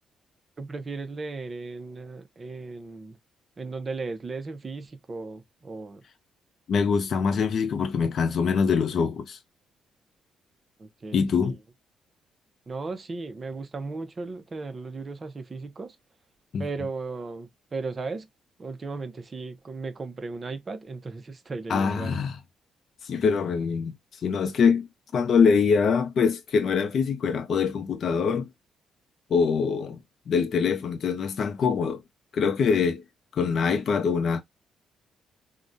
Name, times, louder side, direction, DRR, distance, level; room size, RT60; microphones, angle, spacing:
voice 1, 0.6-3.2 3.6-6.0 10.8-11.5 12.7-16.0 16.6-18.3 18.6-22.3, right 3 dB, 35° right, 0.6 m, -36 dB
voice 2, 6.7-9.4 11.1-11.6 16.5-16.7 21.7-22.4 23.0-23.9 24.2-24.9 25.1-28.5 29.3-30.0 30.3-32.0 32.3-33.0 33.3-34.4, left 6 dB, 60° left, 0.5 m, -24 dB
3.6 x 2.2 x 2.5 m
cardioid pair, 90°, 0 cm